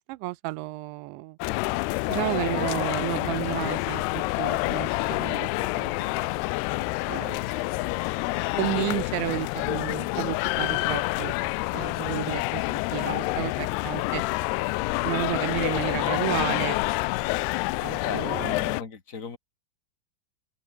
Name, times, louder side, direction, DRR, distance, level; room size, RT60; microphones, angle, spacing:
voice 1, 0.1-1.4 2.1-6.3 7.1-7.5 8.6-11.3 11.7-12.6 12.9-14.2 15.0-16.8 17.8-18.5, right 21 dB, 85° right, 2.9 m, -32 dB
sound 1, 1.4-18.8, left 22 dB, 85° left, 2.4 m, -28 dB
voice 2, 2.1-2.5 18.0-19.4, left 5 dB, 50° left, 0.9 m, -37 dB
omnidirectional pair, 5.3 m